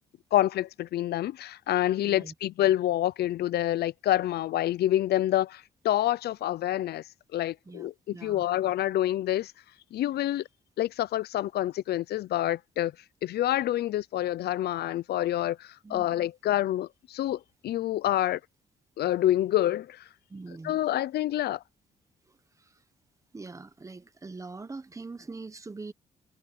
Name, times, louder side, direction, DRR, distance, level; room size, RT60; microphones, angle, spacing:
voice 1, 0.3-7.0 7.3-9.5 9.9-10.4 10.8-12.9 13.2-18.4 19.0-20.0 20.6-21.6, left 13 dB, 80° left, 0.5 m, -27 dB
voice 2, 2.0-2.3 7.6-8.4 15.8-16.2 20.3-20.9 22.3-22.8 23.3-25.9, right 3 dB, 20° right, 1.1 m, -43 dB
cardioid pair, 125°, 16 cm